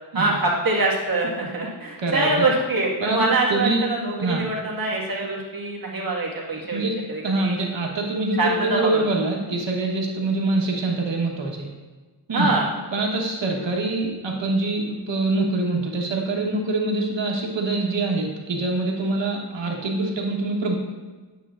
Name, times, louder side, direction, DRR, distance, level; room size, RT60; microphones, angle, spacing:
voice 1, 0.1-7.6 8.4-9.1 12.3-12.7, right 2 dB, 50° right, -4 dB, 1.8 m, -24 dB
voice 2, 3.0-3.8 4.2-4.4 6.7-6.9 7.2-11.7 12.3-12.5 12.9-20.7, right 2 dB, 85° right, 0 dB, 1.3 m, -24 dB
9.2 x 7.5 x 2.5 m, 1.3 s
wide cardioid pair, 80°, 43 cm